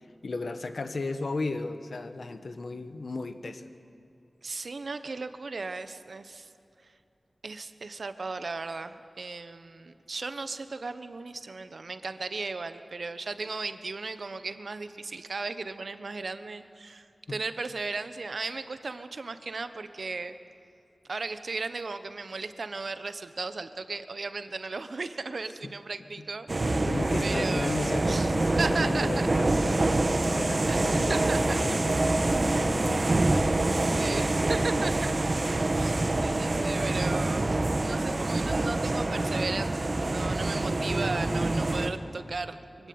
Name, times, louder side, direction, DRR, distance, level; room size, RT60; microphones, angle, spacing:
voice 1, 0.2-3.6 17.3-17.4 25.6-25.7 26.9-33.5, left 3 dB, 70° left, 9 dB, 1.3 m, -35 dB
voice 2, 4.4-6.5 7.4-20.4 21.1-26.9 27.2-28.3 28.6-29.3 30.7-31.6 33.9-35.1 35.7-37.5 37.8-42.9, right 3 dB, 70° right, 10 dB, 1.1 m, -36 dB
sound 1, 26.5-41.9, right 2 dB, 45° right, 1.3 m, -26 dB
23.5 x 16.5 x 9.6 m, 2.7 s
wide cardioid pair, 95°, 0 cm